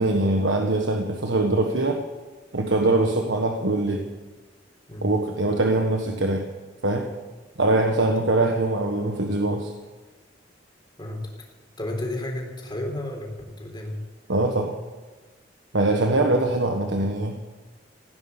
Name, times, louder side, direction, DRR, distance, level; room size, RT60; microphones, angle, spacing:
voice 1, 0.0-2.0 2.5-4.0 5.0-6.4 6.8-7.1 7.6-9.7 14.3-14.7 15.7-17.4, right 2 dB, 85° right, 3 dB, 1.4 m, -22 dB
voice 2, 11.8-14.0 16.1-16.3, left 1 dB, 25° left, 0 dB, 3.7 m, -32 dB
17.0 x 9.8 x 7.0 m, 1.3 s
head